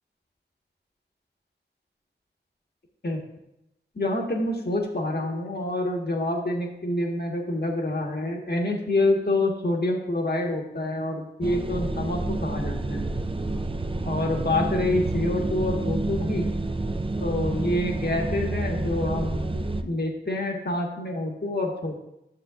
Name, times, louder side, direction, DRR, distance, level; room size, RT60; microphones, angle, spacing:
voice 1, 3.9-13.1 14.1-16.5 17.2-19.5 19.8-22.0, left 2 dB, 60° left, 1 dB, 1.4 m, -27 dB
sound 1, 11.4-19.8, right 2 dB, 30° right, 0.5 m, -29 dB
11.0 x 6.7 x 2.4 m, 0.85 s
wide cardioid pair, 40°, 19 cm